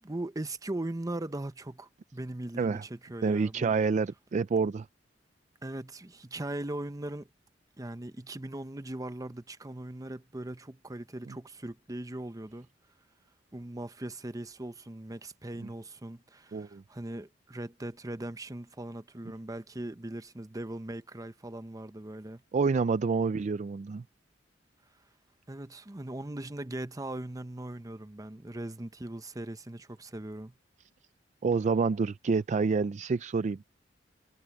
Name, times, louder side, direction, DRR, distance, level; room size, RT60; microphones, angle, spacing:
voice 1, 0.0-3.7 5.6-7.3 7.8-12.7 13.5-22.4 25.5-30.5, right 1 dB, 20° right, 0.8 m, -39 dB
voice 2, 3.2-4.9 11.3-11.4 15.6-15.7 16.5-16.8 22.5-24.0 31.4-33.6, right 4 dB, 40° right, 0.3 m, -28 dB
head